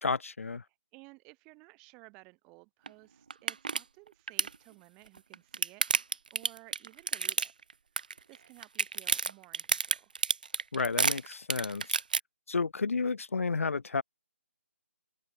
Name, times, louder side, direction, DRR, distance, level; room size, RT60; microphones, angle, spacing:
voice 1, 0.0-0.6 10.7-12.0 12.5-14.0, left 4 dB, 70° left, 0.7 m, -31 dB
voice 2, 0.7-5.8 6.3-7.5 8.3-10.1, right 28 dB, 10° right, 1.9 m, -56 dB
sound 1, 2.9-3.0 3.3-3.8 4.1-4.5 5.2-7.7 8.0-8.4 8.6-12.2, right 5 dB, 35° right, 0.4 m, -29 dB
hypercardioid pair, 180°, 8 cm